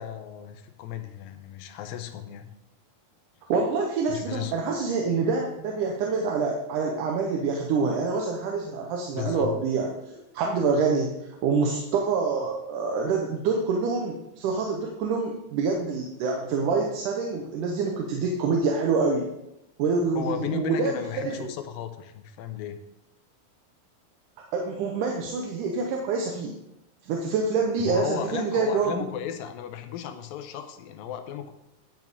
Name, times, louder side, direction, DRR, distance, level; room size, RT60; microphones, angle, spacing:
voice 1, 0.0-2.5 4.1-4.5 9.1-9.6 20.2-22.8 27.8-31.5, left 9 dB, 85° left, 8 dB, 2.5 m, -35 dB
voice 2, 3.5-11.1 11.4-19.3 19.8-21.5 24.5-26.6 27.0-29.0, right 4 dB, 75° right, 0 dB, 2.3 m, -26 dB
10.5 x 8.1 x 3.6 m, 0.89 s
omnidirectional pair, 4.0 m